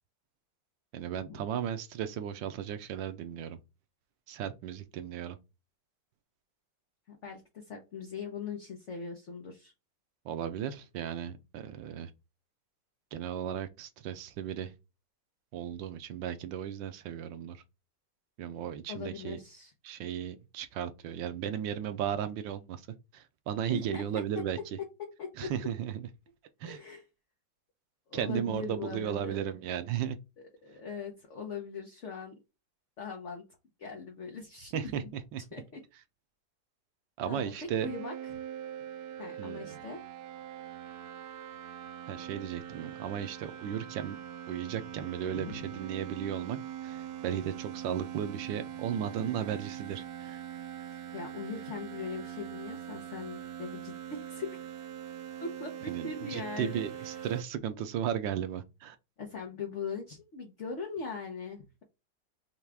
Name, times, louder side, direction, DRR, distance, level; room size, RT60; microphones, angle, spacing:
voice 1, 0.9-3.6 4.3-5.4 10.2-12.1 13.1-14.7 15.5-17.6 18.4-19.4 19.8-22.9 23.1-24.6 25.4-26.1 26.6-26.8 28.1-30.2 34.7-35.4 37.2-37.9 39.4-39.8 42.1-44.2 44.5-46.6 46.8-50.4 55.9-59.0, right 9 dB, 90° right, 1.4 m, -35 dB
voice 2, 7.1-9.7 18.9-19.7 23.7-24.2 24.8-24.9 25.2-25.5 26.6-27.0 28.1-29.4 30.6-32.4 33.0-33.5 33.8-34.7 35.0-35.1 35.5-35.8 37.2-38.1 39.2-40.0 45.3-45.7 51.1-54.6 55.4-57.3 59.2-61.8, left 5 dB, 50° left, 1.0 m, -40 dB
sound 1, 37.8-57.4, right 10 dB, 70° right, 1.0 m, -42 dB
5.8 x 2.4 x 3.3 m
omnidirectional pair, 2.0 m